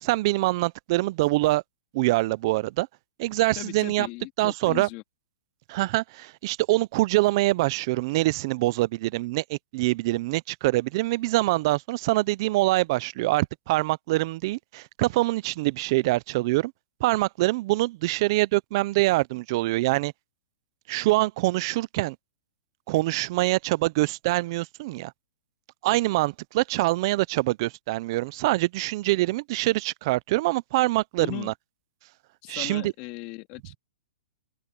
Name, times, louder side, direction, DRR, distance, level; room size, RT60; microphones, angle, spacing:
voice 1, 0.0-1.6 1.9-2.9 3.2-4.1 4.4-4.9 5.7-16.7 17.0-20.1 20.9-22.2 22.9-25.1 25.8-31.5 32.5-32.9, right 19 dB, 30° right, 0.5 m, -24 dB
voice 2, 3.6-5.0 31.2-31.5 32.4-33.8, left 21 dB, 30° left, 2.1 m, -38 dB
hypercardioid pair, 170°, 4 cm